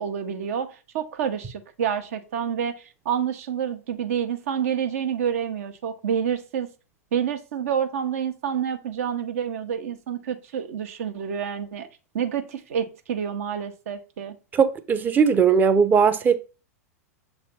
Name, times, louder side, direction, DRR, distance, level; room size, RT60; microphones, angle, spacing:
voice 1, 0.0-6.7 7.1-11.9 12.1-14.4, right 8 dB, 60° right, 0.9 m, -28 dB
voice 2, 14.5-16.4, right 6 dB, 20° right, 0.7 m, -19 dB
6.7 x 3.3 x 4.2 m
figure-of-eight pair, 100°, 9 cm